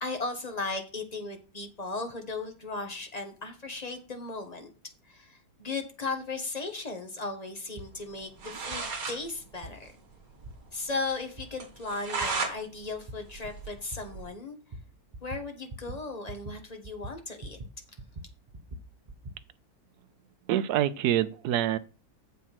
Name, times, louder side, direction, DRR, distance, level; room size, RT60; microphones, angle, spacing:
voice 1, 0.0-4.7 5.1-9.9 10.7-14.6 15.2-17.6, left 3 dB, 25° left, 1.2 m, -36 dB
sound 1, 7.8-7.9 8.7-8.8 9.6-9.7 10.4-10.5 11.4-11.5 12.2-12.3 13.1-13.2 13.9-14.0 14.7-14.8 15.1-15.4 15.7-16.0 16.3-16.6 16.8-17.7 18.0-19.4, right 1 dB, 85° right, 0.3 m, -42 dB
sound 2, 8.1-8.2 8.4-9.2 9.5-9.6 9.9-10.0 10.4-10.5 10.9-11.0 11.6-12.6 12.9-14.3, right 4 dB, 50° right, 2.0 m, -34 dB
voice 2, 20.5-21.8, right 11 dB, 70° right, 1.0 m, -26 dB
7.4 x 5.5 x 5.9 m
omnidirectional pair, 2.0 m